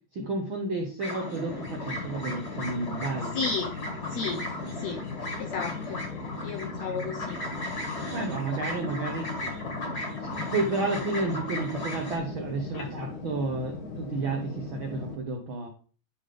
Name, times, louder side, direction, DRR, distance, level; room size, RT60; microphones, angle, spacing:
voice 1, 0.1-3.4 8.1-9.4 10.2-15.7, right 3 dB, 75° right, 2 dB, 1.1 m, -31 dB
sound 1, 1.0-12.2, left 1 dB, 25° left, 1.8 m, -37 dB
sound 2, 1.5-15.2, left 3 dB, 55° left, 1.0 m, -38 dB
voice 2, 3.3-3.7 4.1-4.4 4.8-5.0 5.4-6.0 6.4-7.4 12.7-13.1, left 4 dB, 75° left, 4 dB, 1.6 m, -33 dB
11.0 x 3.8 x 5.0 m, 0.40 s
omnidirectional pair, 4.0 m